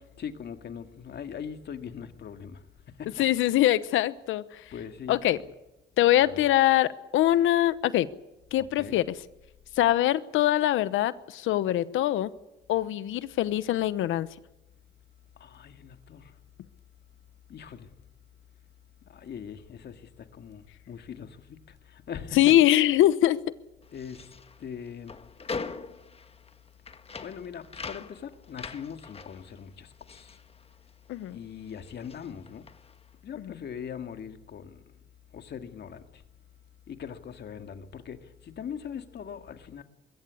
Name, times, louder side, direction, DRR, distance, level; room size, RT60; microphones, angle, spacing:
voice 1, 0.2-3.2 4.7-5.5 6.2-6.4 8.8-9.0 15.4-16.3 17.5-17.9 19.1-22.5 23.9-24.3 24.6-25.2 27.2-30.4 31.3-32.6 33.2-34.8 35.3-36.2 36.9-39.8, left 7 dB, 60° left, 2.1 m, -41 dB
voice 2, 3.2-4.6 5.1-5.4 6.0-8.1 8.5-9.1 9.8-12.3 12.7-14.3 22.4-23.4 31.1-31.4 33.4-33.5, left 13 dB, 85° left, 1.0 m, -23 dB
sound 1, 23.8-31.3 31.6-33.1, left 4 dB, 30° left, 1.5 m, -42 dB
22.0 x 15.5 x 9.7 m
cardioid pair, 90°, 20 cm